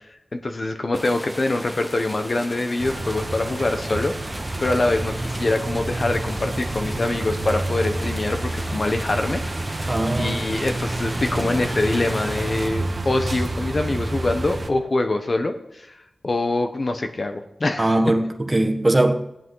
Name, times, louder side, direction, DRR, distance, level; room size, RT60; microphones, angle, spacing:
voice 1, 0.3-4.1 4.6-9.4 9.7-9.9 10.2-16.0 16.2-17.9, left 2 dB, 55° left, 7 dB, 1.2 m, -24 dB
sound 1, 0.9-12.7, equal, 5° left, 1.0 m, -37 dB
sound 2, 2.8-14.7, right 2 dB, 50° right, 1.5 m, -29 dB
voice 2, 9.9-10.5 17.8-19.1, right 1 dB, 30° right, 5 dB, 1.4 m, -20 dB
15.5 x 10.5 x 4.0 m, 0.88 s
cardioid pair, 50°, 0 cm